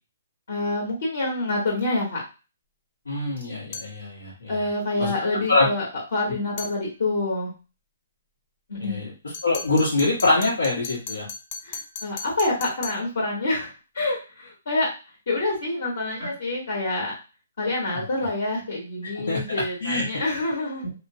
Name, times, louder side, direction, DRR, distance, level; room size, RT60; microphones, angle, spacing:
voice 1, 0.5-2.2 4.5-5.9 6.1-7.5 8.7-9.0 11.6-14.9 15.3-17.1 17.6-20.8, left 2 dB, 65° left, -3 dB, 1.2 m, -27 dB
voice 2, 3.1-4.5 5.0-5.1 5.5-5.7 8.8-9.1 9.4-11.3 16.2-16.3 17.9-18.0 19.2-20.0, left 2 dB, 85° left, -6 dB, 1.1 m, -24 dB
sound 1, 3.7-4.0 6.6-6.8 9.3-13.1, left 4 dB, 35° left, 0.5 m, -37 dB
3.0 x 2.1 x 2.7 m, 0.32 s
hypercardioid pair, 140°, 0 cm